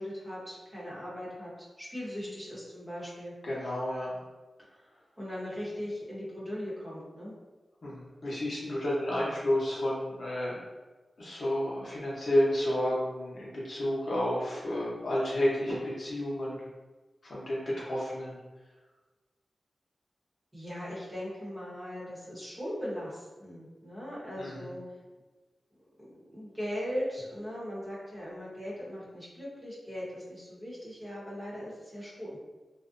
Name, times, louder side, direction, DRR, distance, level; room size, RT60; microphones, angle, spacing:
voice 1, 0.0-1.5 1.8-3.3 4.7-4.9 5.2-7.3 20.5-24.8 25.8-32.4, equal, 15° right, -7 dB, 0.9 m, -39 dB
voice 2, 3.4-4.1 7.8-10.6 11.2-16.6 17.2-18.4 24.4-24.7, left 1 dB, 65° left, -6 dB, 0.7 m, -31 dB
2.4 x 2.1 x 2.5 m, 1.2 s
wide cardioid pair, 100°, 0 cm